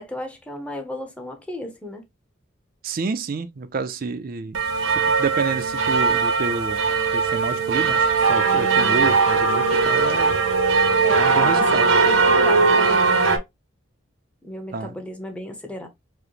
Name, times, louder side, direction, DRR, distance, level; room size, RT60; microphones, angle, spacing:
voice 1, 0.0-2.0 11.0-11.6 11.9-13.1 14.4-15.9, equal, 5° left, 0.7 m, -34 dB
voice 2, 2.8-4.6 4.9-6.8 7.1-10.4 11.2-11.9 14.7-14.9, right 4 dB, 45° right, 0.4 m, -29 dB
sound 1, 4.5-13.4, right 4 dB, 80° right, 0.8 m, -19 dB
4.8 x 2.1 x 3.0 m
head